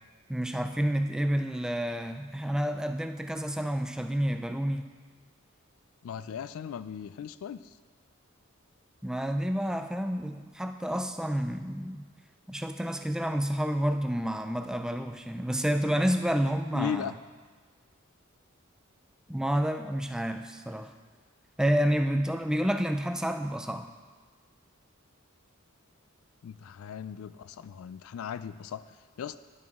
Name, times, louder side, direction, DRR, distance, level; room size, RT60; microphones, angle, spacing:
voice 1, 0.3-4.9 9.0-12.1 12.5-17.1 19.3-20.9 21.6-23.9, equal, 5° right, 6 dB, 0.3 m, -29 dB
voice 2, 6.0-7.6 16.7-17.1 26.4-29.4, left 8 dB, 80° left, 15 dB, 0.3 m, -37 dB
10.5 x 6.1 x 3.6 m, 1.5 s
head